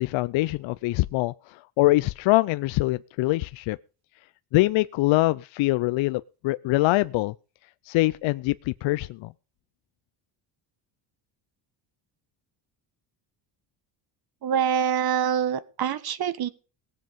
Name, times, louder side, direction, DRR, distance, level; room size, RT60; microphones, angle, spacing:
voice 1, 0.0-3.8 4.5-7.3 7.9-9.3, left 19 dB, 70° left, 0.6 m, -24 dB
voice 2, 14.4-16.5, right 8 dB, 50° right, 1.5 m, -25 dB
18.5 x 7.7 x 5.3 m
cardioid pair, 120°, 49 cm